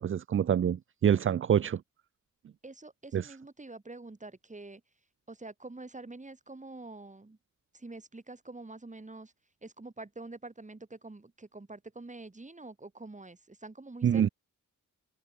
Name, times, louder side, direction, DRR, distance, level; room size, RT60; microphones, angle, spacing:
voice 1, 0.0-1.8 3.1-3.3 14.0-14.3, right 9 dB, 40° right, 0.4 m, -26 dB
voice 2, 2.6-4.8 5.3-7.4 7.7-9.3 9.6-14.3, right 2 dB, 20° right, 6.8 m, -46 dB
wide cardioid pair, 125°, 33 cm